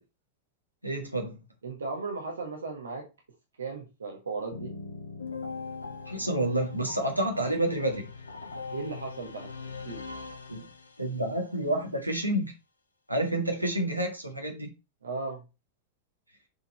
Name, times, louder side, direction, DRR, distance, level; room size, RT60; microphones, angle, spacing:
voice 1, 0.8-1.4 6.1-8.0 10.5-10.6 11.0-12.5 13.1-14.7, right 1 dB, 90° right, 1.7 m, -29 dB
voice 2, 1.6-3.1 3.6-4.8 8.7-9.5 9.8-10.0 15.0-15.4, right 3 dB, 70° right, 1.5 m, -36 dB
sound 1, 4.5-11.3, left 4 dB, 75° left, 1.0 m, -41 dB
6.8 x 4.4 x 4.2 m
figure-of-eight pair, 90°, 0 cm